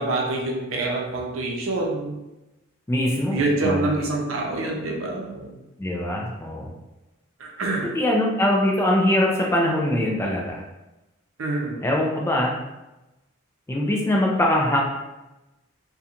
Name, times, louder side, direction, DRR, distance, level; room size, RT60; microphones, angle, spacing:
voice 1, 0.0-2.2 3.3-5.6 7.4-8.0 11.4-11.8, right 2 dB, 70° right, -1 dB, 0.6 m, -26 dB
voice 2, 2.9-3.8 5.8-6.7 7.9-10.6 11.8-12.5 13.7-14.8, left 1 dB, 15° left, -2 dB, 0.3 m, -22 dB
2.4 x 2.2 x 2.8 m, 1.0 s
head